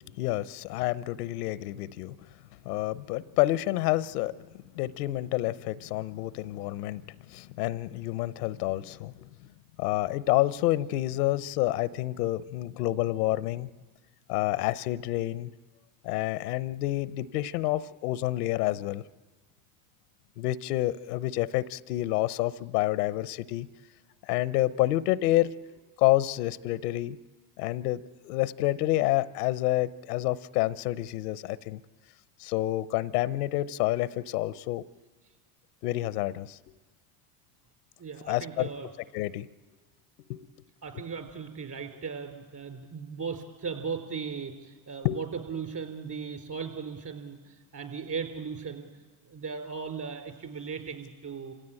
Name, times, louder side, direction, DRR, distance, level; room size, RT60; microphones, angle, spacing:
voice 1, 0.2-2.2 2.6-4.5 4.7-9.3 9.8-13.7 14.3-15.5 16.0-19.0 20.4-23.7 24.2-25.5 26.0-27.2 27.6-31.8 32.4-34.8 35.8-36.6 38.3-38.7 39.1-39.5 40.3-40.4 45.0-45.2, left 16 dB, 90° left, 18 dB, 0.8 m, -28 dB
voice 2, 38.0-38.9 40.8-48.9 49.2-51.5, right 5 dB, 40° right, 6 dB, 4.1 m, -37 dB
27.5 x 16.5 x 9.0 m, 1.3 s
supercardioid pair, 80°, 44 cm